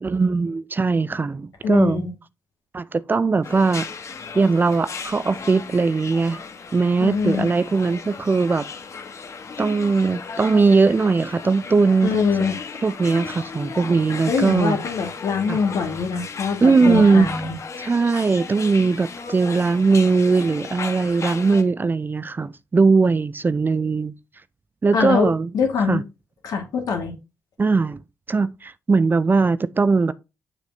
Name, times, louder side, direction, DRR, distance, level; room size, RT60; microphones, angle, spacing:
voice 1, 0.0-2.1 2.7-3.9 4.3-6.4 6.7-8.7 9.6-12.2 12.8-14.8 15.5-15.6 16.6-17.3 17.8-24.1 24.8-25.5 25.9-26.0 27.6-28.0 28.3-30.1, right 4 dB, 30° right, 0.5 m, -19 dB
voice 2, 1.6-2.1 7.0-7.5 12.0-12.6 14.3-17.5 24.9-26.0 26.4-27.1, left 5 dB, 65° left, 1.8 m, -23 dB
sound 1, 3.4-21.6, left 5 dB, 45° left, 1.2 m, -35 dB
6.9 x 5.9 x 2.7 m
hypercardioid pair, 45°, 7 cm